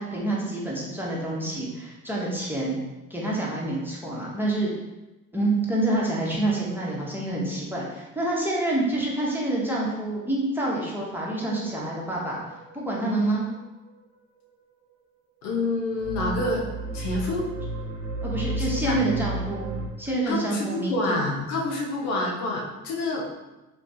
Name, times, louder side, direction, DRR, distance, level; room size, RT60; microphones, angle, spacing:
voice 1, 0.0-2.8 3.1-4.7 5.3-13.5 18.2-19.7 20.0-21.2, right 2 dB, 5° right, -5 dB, 1.0 m, -27 dB
sound 1, 11.4-14.0 16.0-19.9, right 2 dB, 60° right, 0.9 m, -33 dB
voice 2, 15.4-16.7 16.9-17.5 18.6-19.0 20.3-23.3, left 2 dB, 75° left, -1 dB, 0.8 m, -27 dB
3.2 x 3.0 x 2.7 m, 1.0 s
hypercardioid pair, 60°, 42 cm